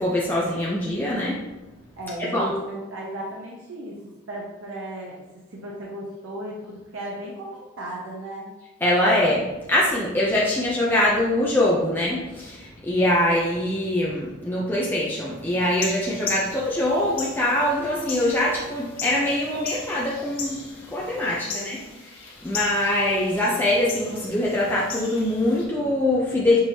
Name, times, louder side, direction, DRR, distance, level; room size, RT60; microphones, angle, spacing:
voice 1, 0.0-1.4 2.3-2.5 8.8-26.6, left 1 dB, 10° left, -5 dB, 0.5 m, -23 dB
voice 2, 2.0-8.5 21.2-22.0, right 1 dB, 70° right, -3 dB, 0.8 m, -35 dB
sound 1, 15.6-25.7, left 4 dB, 85° left, 1.2 m, -37 dB
6.0 x 3.1 x 2.7 m, 1.1 s
head